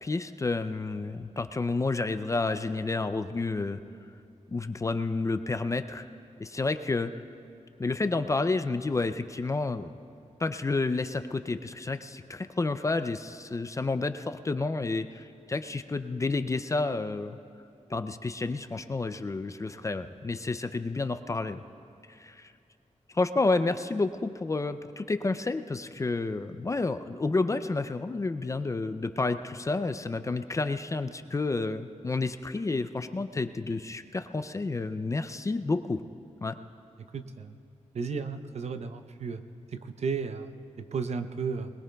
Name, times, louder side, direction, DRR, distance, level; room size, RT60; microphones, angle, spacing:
voice 1, 0.0-3.8 4.5-6.1 6.4-7.1 7.8-9.9 10.4-17.4 17.9-21.6 22.1-22.5 23.1-36.0 36.4-36.6, left 3 dB, 25° left, 10 dB, 0.4 m, -30 dB
voice 2, 37.1-37.5 37.9-39.4 39.7-41.7, right 5 dB, 60° right, 8 dB, 0.6 m, -34 dB
21.0 x 20.5 x 2.3 m, 2.6 s
wide cardioid pair, 160°, 12 cm